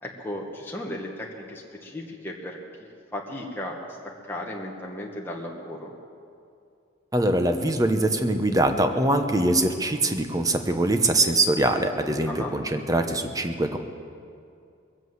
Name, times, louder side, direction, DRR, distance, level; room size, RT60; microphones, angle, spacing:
voice 1, 0.0-2.6 3.1-5.9 12.3-12.5, left 1 dB, 10° left, -2 dB, 1.4 m, -35 dB
voice 2, 7.1-13.8, right 1 dB, 15° right, 7 dB, 0.9 m, -23 dB
21.5 x 8.3 x 7.9 m, 2.4 s
head